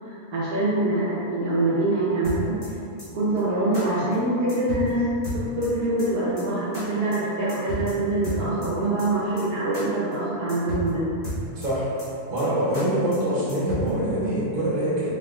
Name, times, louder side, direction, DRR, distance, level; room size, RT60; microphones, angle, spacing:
voice 1, 0.1-2.6 3.1-5.1 5.3-11.1, right 2 dB, 85° right, -9 dB, 1.2 m, -24 dB
sound 1, 2.2-2.7 3.0-3.1 3.4-3.5 3.7-3.8 4.1-4.2 4.5-4.9 5.2-5.7 6.0-6.1 6.4-6.5 6.7-6.8 7.1-7.2 7.5-7.9 8.2-8.7 9.0-9.1 9.4-9.5 9.7-9.8 10.1-10.2 10.5-10.9 11.2-11.7 12.0-12.1 12.4-12.5 12.7-12.8 13.1-13.2 13.5-13.9, equal, 30° left, 1.1 m, -33 dB
voice 2, 11.6-11.9 12.3-15.1, right 1 dB, 65° right, -9 dB, 1.6 m, -24 dB
4.2 x 3.4 x 2.3 m, 2.6 s
omnidirectional pair, 1.6 m